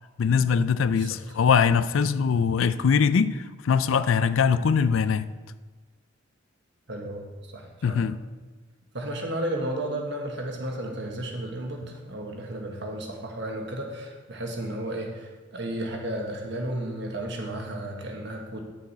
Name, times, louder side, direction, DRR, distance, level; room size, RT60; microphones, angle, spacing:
voice 1, 0.2-5.3 7.8-8.2, left 6 dB, 80° left, 0.4 m, -22 dB
voice 2, 6.9-7.3 7.5-8.0 8.9-18.6, right 1 dB, 60° right, 1.5 m, -33 dB
9.8 x 6.5 x 4.2 m
head